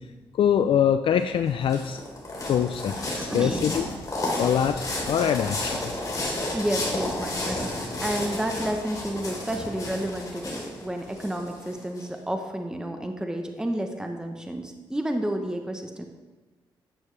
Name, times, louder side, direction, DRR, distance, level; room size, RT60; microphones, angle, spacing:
voice 1, 0.3-2.0 2.4-3.9 4.4-5.9, left 8 dB, 65° left, 9 dB, 0.4 m, -24 dB
sound 1, 1.2-12.0, left 1 dB, 40° left, 3.4 m, -32 dB
voice 2, 3.1-3.7 6.5-16.0, right 1 dB, 5° right, 4 dB, 0.9 m, -31 dB
11.5 x 8.8 x 3.3 m, 1.2 s
cardioid pair, 90°, 9 cm